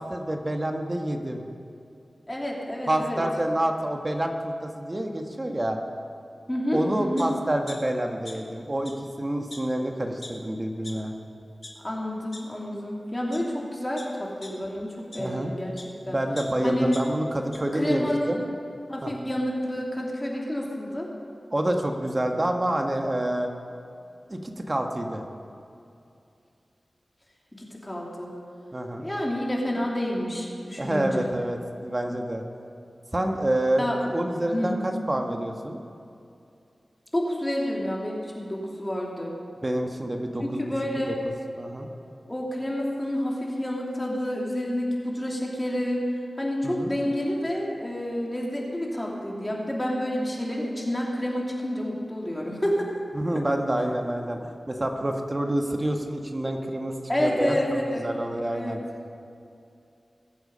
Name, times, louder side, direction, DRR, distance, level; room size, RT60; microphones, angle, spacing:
voice 1, 0.0-1.4 2.9-5.8 6.7-8.9 9.2-11.2 15.2-15.5 16.1-18.4 19.0-19.1 21.5-23.5 24.3-25.2 28.7-29.1 30.8-32.4 33.1-35.8 39.6-40.6 41.6-41.9 46.6-46.9 53.1-56.9 57.2-57.5 57.9-58.8, right 1 dB, 30° right, 3 dB, 1.4 m, -27 dB
voice 2, 2.3-3.2 6.5-7.3 11.8-15.7 16.1-16.2 16.6-16.9 17.6-18.4 18.9-21.1 27.5-28.3 29.0-31.3 33.8-34.0 34.5-34.7 37.1-39.3 40.6-41.1 42.3-46.0 46.4-52.9 53.3-53.4 57.1-58.1 58.5-58.8, left 1 dB, 20° left, -2 dB, 2.9 m, -29 dB
sound 1, 7.2-7.3 7.7-8.6 8.8-8.9 9.5-9.6 10.2-10.3 10.8-10.9 11.4-11.7 12.3-12.4 13.1-13.4 14.0-15.9 16.4-17.6 18.0-18.1, left 2 dB, 55° left, 1.9 m, -43 dB
21.5 x 8.1 x 5.5 m, 2.6 s
wide cardioid pair, 55°, 0 cm